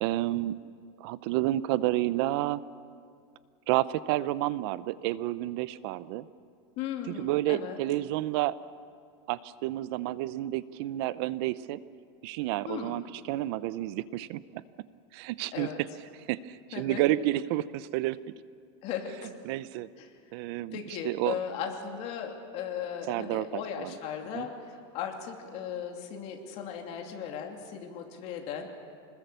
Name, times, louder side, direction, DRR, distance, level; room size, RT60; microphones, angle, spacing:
voice 1, 0.0-0.7 1.0-2.6 3.7-6.3 7.1-8.6 9.3-11.8 12.2-14.6 15.1-15.7 16.3-18.2 19.5-19.9 20.3-21.4 23.1-23.9 24.3-24.5, right 15 dB, 55° right, 17 dB, 0.7 m, -30 dB
voice 2, 6.8-7.8 12.7-12.9 15.5-15.8 16.7-17.0 18.8-19.3 20.0-20.1 20.7-28.7, left 8 dB, 45° left, 2 dB, 2.9 m, -37 dB
26.5 x 20.5 x 6.9 m, 2.3 s
supercardioid pair, 145°, 15 cm